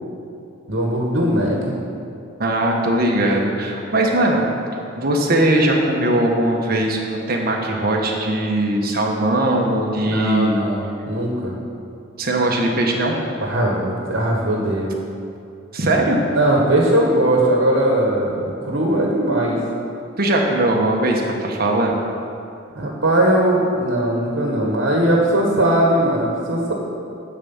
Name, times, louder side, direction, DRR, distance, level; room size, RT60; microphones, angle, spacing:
voice 1, 0.7-1.8 10.0-11.5 13.4-14.9 16.3-19.6 22.7-26.7, right 1 dB, 80° right, -2 dB, 1.5 m, -19 dB
voice 2, 2.4-4.4 5.0-10.6 12.2-13.2 15.7-16.2 20.2-21.9, right 1 dB, 50° right, 0 dB, 1.3 m, -19 dB
11.0 x 4.9 x 7.2 m, 2.6 s
head